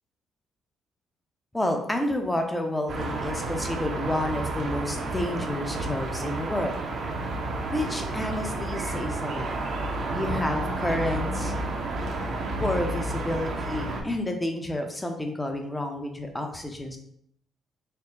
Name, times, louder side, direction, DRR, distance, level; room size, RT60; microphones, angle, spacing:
voice 1, 1.5-6.8 7.7-9.5 10.1-11.5 12.6-17.0, left 1 dB, 10° left, 4 dB, 0.7 m, -30 dB
sound 1, 2.9-14.0, right 2 dB, 60° right, 0.8 m, -31 dB
4.4 x 2.1 x 3.8 m, 0.69 s
cardioid pair, 90°, 0 cm